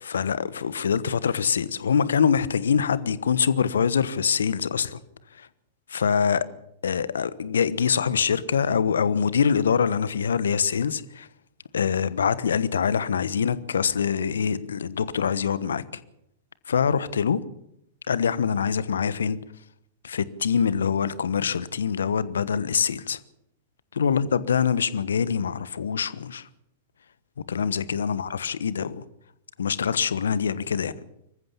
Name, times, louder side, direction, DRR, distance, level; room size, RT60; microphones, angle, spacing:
voice 1, 0.1-5.0 5.4-5.5 5.9-6.5 6.8-11.3 11.7-15.8 16.7-17.4 18.1-19.4 20.0-23.2 23.9-26.5 27.5-29.0 29.6-30.9, left 7 dB, 70° left, 1.1 m, -24 dB
25.5 x 15.0 x 7.0 m
figure-of-eight pair, 100°, 0 cm